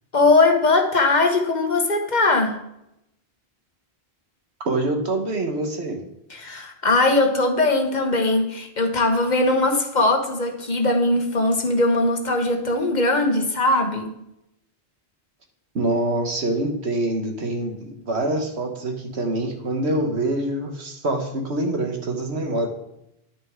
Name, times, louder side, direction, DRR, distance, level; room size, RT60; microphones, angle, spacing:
voice 1, 0.1-2.5 6.3-14.1, left 2 dB, 45° left, 4 dB, 1.2 m, -20 dB
voice 2, 4.6-6.0 15.7-22.7, right 1 dB, 85° right, 3 dB, 1.6 m, -25 dB
10.5 x 6.5 x 3.7 m, 0.82 s
omnidirectional pair, 1.1 m